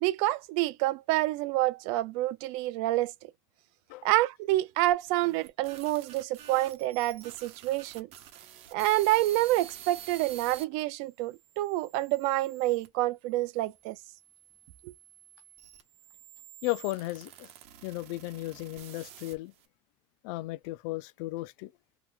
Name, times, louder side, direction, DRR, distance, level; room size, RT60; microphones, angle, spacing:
voice 1, 0.0-3.1 4.0-8.1 8.7-14.0 14.8-14.9, right 16 dB, 75° right, 0.5 m, -28 dB
sound 1, 4.9-10.6 11.3-12.9 13.7-19.7, right 10 dB, 60° right, 0.9 m, -49 dB
voice 2, 16.6-17.5 17.8-19.5 20.2-21.7, left 19 dB, 80° left, 0.4 m, -35 dB
2.9 x 2.2 x 3.6 m
cardioid pair, 125°, 12 cm